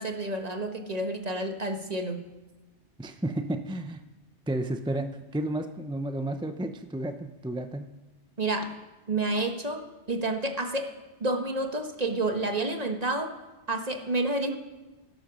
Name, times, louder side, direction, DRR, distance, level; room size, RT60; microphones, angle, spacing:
voice 1, 0.0-2.2 8.4-8.8 9.1-10.9 11.2-13.3 13.7-14.6, right 2 dB, 35° right, 5 dB, 1.5 m, -29 dB
voice 2, 3.0-4.0 4.5-7.9, right 1 dB, 5° right, 7 dB, 0.4 m, -32 dB
15.5 x 12.5 x 6.1 m, 1.1 s
omnidirectional pair, 1.2 m